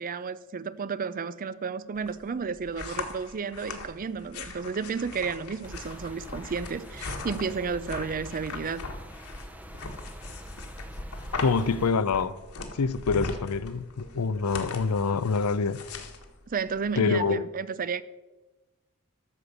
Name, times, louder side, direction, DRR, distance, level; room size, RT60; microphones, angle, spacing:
voice 1, 0.0-8.8 16.5-18.0, right 5 dB, 40° right, 0.5 m, -32 dB
sound 1, 2.0-17.3, left 3 dB, 70° left, 1.6 m, -40 dB
sound 2, 5.6-11.9, equal, 5° right, 0.7 m, -44 dB
voice 2, 11.4-12.3 12.8-15.8 17.0-17.4, left 5 dB, 85° left, 0.6 m, -26 dB
12.5 x 7.0 x 6.6 m
head